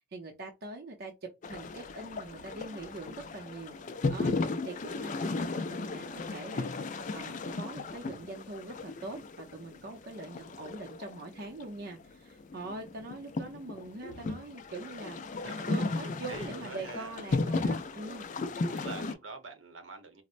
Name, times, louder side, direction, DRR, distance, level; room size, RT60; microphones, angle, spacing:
voice 1, 0.1-3.8 4.1-18.3, right 2 dB, 55° right, 0.6 m, -43 dB
sound 1, 1.4-19.1, left 3 dB, 40° left, 0.4 m, -35 dB
voice 2, 15.4-16.0 16.3-17.2 18.7-20.2, right 4 dB, 75° right, 0.9 m, -45 dB
4.2 x 2.0 x 2.5 m
head